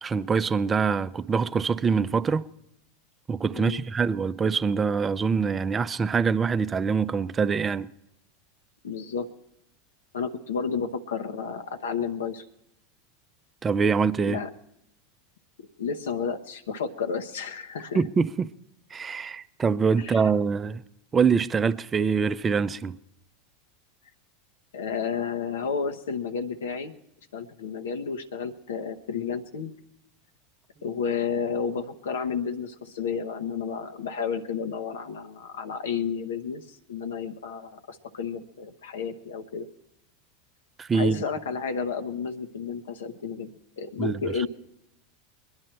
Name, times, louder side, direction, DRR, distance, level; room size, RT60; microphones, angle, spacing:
voice 1, 0.0-2.5 3.3-7.9 13.6-14.4 17.9-18.5 18.9-20.8 21.1-23.0 40.8-41.2 44.0-44.3, right 5 dB, 25° right, 0.5 m, -24 dB
voice 2, 8.8-9.3 10.1-12.5 14.2-14.5 15.8-18.0 20.0-20.2 24.7-26.9 27.3-29.7 30.8-39.7 40.9-43.5 43.8-44.5, left 6 dB, 75° left, 0.8 m, -31 dB
22.0 x 10.5 x 4.4 m
hypercardioid pair, 85°, 0 cm